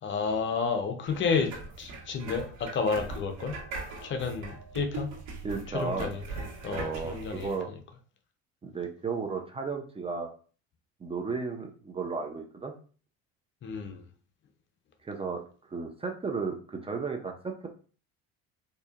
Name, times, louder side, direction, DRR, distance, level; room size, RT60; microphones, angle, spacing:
voice 1, 0.0-3.6 4.0-5.1 5.7-6.2 6.6-7.8 13.6-14.0, left 5 dB, 40° left, 0.7 m, -31 dB
sound 1, 1.1-7.6, right 3 dB, 65° right, 1.6 m, -41 dB
voice 2, 5.4-6.1 6.7-7.7 8.6-10.3 11.0-12.7 15.0-15.4 15.7-17.7, right 4 dB, 20° right, 0.6 m, -34 dB
4.2 x 2.7 x 2.4 m
supercardioid pair, 100°, 31 cm